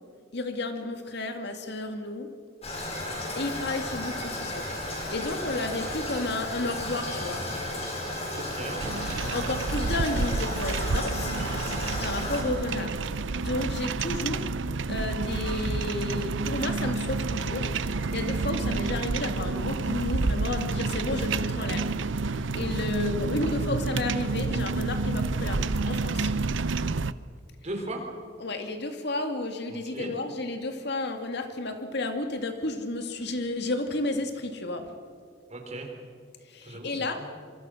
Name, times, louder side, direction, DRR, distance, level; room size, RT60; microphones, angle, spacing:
voice 1, 0.3-2.3 3.3-4.6 5.1-7.5 9.3-11.3 12.0-13.0 13.4-14.4 14.9-17.7 18.1-21.9 22.5-26.3 28.4-34.9 36.5-37.2, left 2 dB, 60° left, 6 dB, 2.3 m, -32 dB
Toilet flush, 2.6-12.4, left 1 dB, 35° left, 6.6 m, -34 dB
voice 2, 8.3-8.8 27.6-28.0 29.7-30.1 35.5-35.9 36.6-37.3, right 1 dB, 35° right, 3 dB, 4.4 m, -37 dB
sound 1, 8.8-27.1, right 3 dB, 75° right, 0.7 m, -29 dB
27.0 x 24.0 x 6.5 m, 2.1 s
head